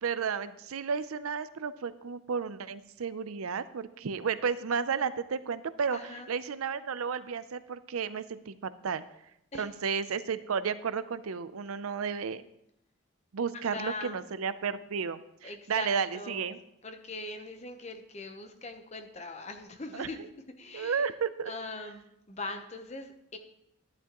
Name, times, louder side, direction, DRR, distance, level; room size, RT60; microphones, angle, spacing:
voice 1, 0.0-8.5 8.8-9.0 9.6-12.5 13.3-16.6 19.9-20.3 20.7-21.5, right 6 dB, 90° right, 14 dB, 0.5 m, -33 dB
voice 2, 5.9-6.3 9.5-9.7 13.7-14.2 15.4-16.6 16.8-20.2 20.6-21.0 21.5-23.4, left 2 dB, 30° left, 6 dB, 0.9 m, -41 dB
11.5 x 10.5 x 3.0 m, 0.80 s
head